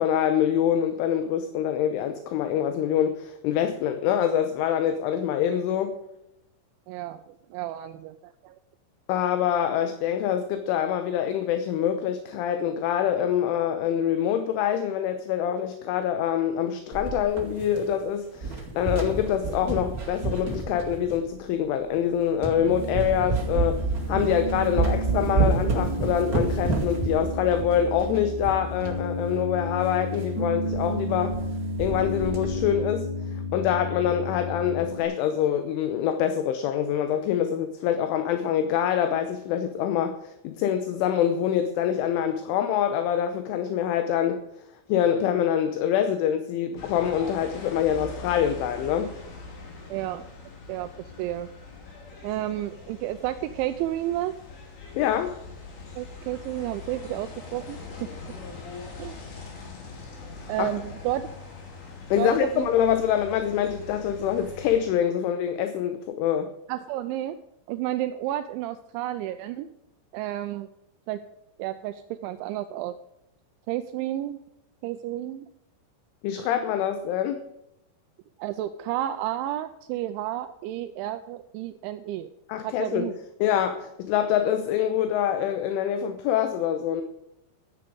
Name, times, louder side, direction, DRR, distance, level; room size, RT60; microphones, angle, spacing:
voice 1, 0.0-6.0 9.1-23.8 24.1-31.4 31.8-44.4 44.9-49.1 54.9-55.4 60.6-60.7 62.1-66.5 76.2-77.4 82.5-83.1 83.4-87.0, left 9 dB, 80° left, 8 dB, 3.2 m, -25 dB
voice 2, 6.9-8.6 9.7-9.8 49.9-50.2 50.7-50.9 51.2-51.5 52.2-54.3 56.0-57.8 59.0-59.2 60.5-61.2 62.2-62.7 66.7-67.4 67.7-69.7 70.1-70.7 71.1-71.2 71.6-72.9 73.7-74.4 74.8-75.5 78.4-82.3 82.6-83.1, right 13 dB, 85° right, 9 dB, 2.8 m, -31 dB
sound 1, 16.9-18.0 18.3-21.3 21.9-22.0 22.4-22.6 22.9-29.0 29.3-29.4 29.6-29.7 30.1-30.3 30.7-30.9 31.1-31.5 31.8-32.7, right 3 dB, 65° right, 0.8 m, -29 dB
Piano, 22.6-35.0, equal, 15° left, 6.0 m, -32 dB
sound 2, 46.8-64.8, left 3 dB, 60° left, 4.9 m, -42 dB
13.0 x 9.8 x 5.1 m, 0.85 s
omnidirectional pair, 5.8 m